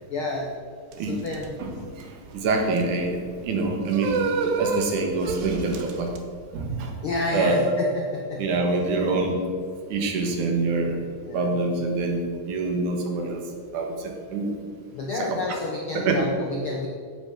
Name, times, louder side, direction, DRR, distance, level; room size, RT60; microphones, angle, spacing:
voice 1, 0.1-0.5 1.0-1.5 7.0-8.4 11.2-11.5 14.9-16.9, left 2 dB, 80° left, 1 dB, 1.2 m, -30 dB
sound 1, 0.9-6.2, right 4 dB, 85° right, 2.8 m, -30 dB
voice 2, 1.6-2.1 2.3-4.2 4.6-6.1 6.5-6.9 7.3-7.9 8.4-9.4 9.9-11.0 11.3-13.4 13.7-14.5 15.1-15.6 15.9-16.2, right 3 dB, 70° right, 2 dB, 2.8 m, -25 dB
10.0 x 8.1 x 6.0 m, 2.1 s
omnidirectional pair, 3.8 m